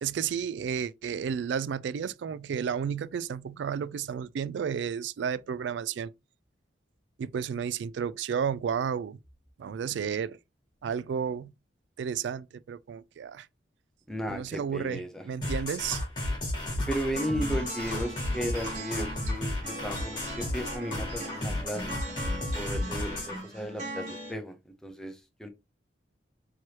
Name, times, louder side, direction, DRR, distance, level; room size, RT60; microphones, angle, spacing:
voice 1, 0.0-6.1 7.2-9.2 9.6-10.4 10.8-11.5 12.0-13.5 14.3-16.0, right 7 dB, 70° right, 0.3 m, -32 dB
voice 2, 14.1-15.2 16.9-21.9 22.5-24.6 24.8-25.5, equal, 5° left, 0.6 m, -35 dB
sound 1, 15.4-23.4, left 1 dB, 25° left, 2.1 m, -33 dB
sound 2, 17.1-24.3, right 1 dB, 40° right, 1.8 m, -40 dB
4.5 x 3.2 x 2.8 m
head